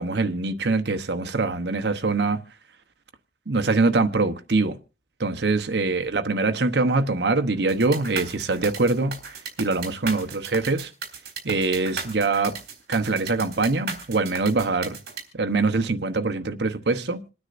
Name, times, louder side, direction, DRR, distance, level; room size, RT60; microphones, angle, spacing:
voice 1, 0.0-2.4 3.5-4.8 5.2-9.2 9.6-10.9 11.4-12.5 12.9-15.0 15.3-17.2, right 3 dB, 80° right, 1.0 m, -23 dB
sound 1, 7.7-15.2, right 5 dB, 60° right, 3.7 m, -35 dB
27.0 x 9.7 x 2.6 m
head